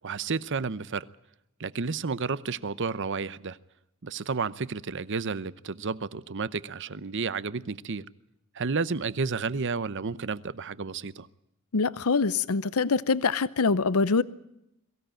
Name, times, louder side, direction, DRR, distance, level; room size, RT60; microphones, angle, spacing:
voice 1, 0.0-1.1 1.6-3.6 4.0-8.0 8.5-11.3, right 4 dB, 55° right, 0.8 m, -31 dB
voice 2, 11.7-14.2, left 4 dB, 80° left, 0.7 m, -24 dB
22.5 x 16.0 x 9.0 m
head